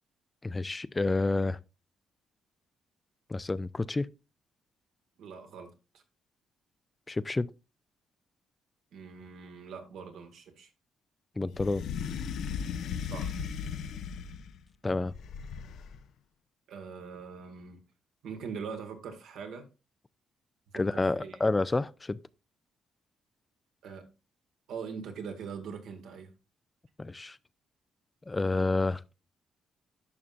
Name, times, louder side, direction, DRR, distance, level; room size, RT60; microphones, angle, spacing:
voice 1, 0.4-1.6 3.3-4.1 7.1-7.5 11.4-11.8 14.8-15.1 20.7-22.2 27.0-27.4 28.3-29.0, left 2 dB, 20° left, 0.4 m, -29 dB
voice 2, 5.2-6.0 8.9-10.7 13.0-13.4 16.7-17.8 18.2-19.6 20.7-21.4 23.8-24.1 24.7-26.3, right 6 dB, 80° right, 1.8 m, -42 dB
sound 1, 11.5-14.6 15.1-16.0, left 7 dB, 75° left, 0.7 m, -36 dB
11.0 x 5.7 x 2.5 m
cardioid pair, 90°, 0 cm